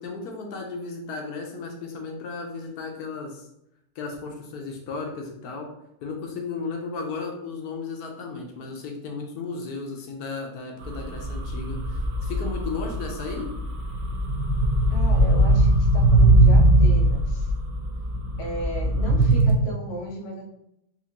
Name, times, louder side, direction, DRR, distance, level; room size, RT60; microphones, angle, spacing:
voice 1, 0.0-3.5 4.0-5.7 6.0-13.5, left 4 dB, 80° left, 2 dB, 1.1 m, -34 dB
sound 1, 10.8-19.5, right 1 dB, 65° right, 0.9 m, -20 dB
voice 2, 14.9-17.5 18.4-20.4, right 1 dB, 50° left, 0 dB, 0.8 m, -35 dB
4.2 x 2.5 x 2.8 m, 0.81 s
omnidirectional pair, 1.6 m